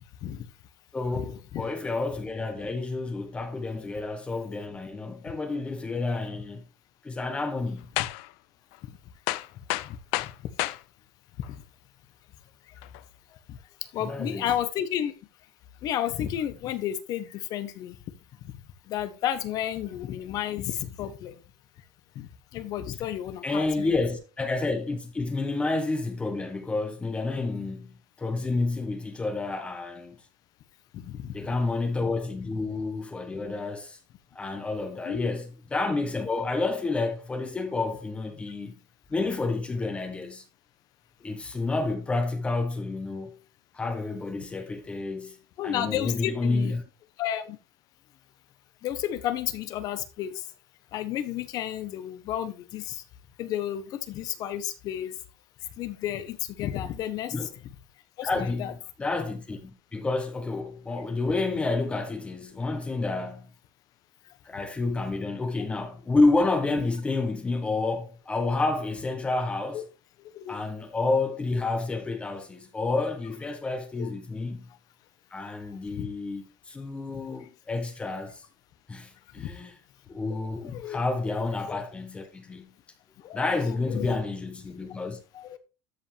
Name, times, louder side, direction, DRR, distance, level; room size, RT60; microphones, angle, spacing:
voice 1, 0.9-6.6 7.0-7.9 14.0-14.5 23.4-30.2 31.3-34.0 34.3-38.8 39.1-40.4 41.2-43.4 43.7-45.4 45.6-46.8 57.3-57.5 58.2-63.5 64.4-69.8 70.5-74.7 75.3-78.4 78.9-79.7 80.1-82.7 83.3-85.2, left 3 dB, 10° left, 1.1 m, -29 dB
sound 1, 8.0-8.3 8.7-8.8 9.3-10.8 11.4-11.5 12.8-13.0, left 19 dB, 60° left, 0.5 m, -30 dB
voice 2, 13.9-15.1 15.8-18.0 18.9-21.4 22.1-23.9 30.9-31.4 35.0-35.3 45.6-46.7 47.2-47.6 48.8-50.4 50.9-53.0 53.4-55.1 55.8-57.3 58.2-58.7 69.7-69.8 70.3-70.6 74.0-74.1 76.0-76.1 77.3-77.4 79.4-79.5 80.3-80.4 80.6-81.0 81.7-81.8 83.2-84.2 85.3-85.6, left 11 dB, 40° left, 1.1 m, -32 dB
13.0 x 5.3 x 3.4 m
cardioid pair, 170°, 10 cm